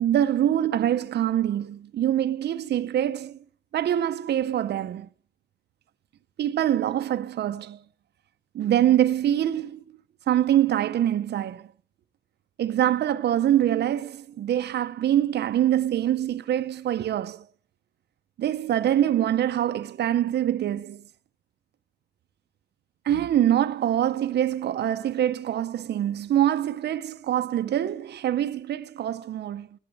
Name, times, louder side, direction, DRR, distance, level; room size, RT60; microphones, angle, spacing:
voice 1, 0.0-3.4 3.7-5.1 6.4-7.8 8.5-9.8 10.3-11.7 12.6-17.5 18.4-21.0 23.0-29.7, right 11 dB, 75° right, 0.5 m, -24 dB
17.5 x 9.7 x 4.6 m
wide cardioid pair, 130°, 18 cm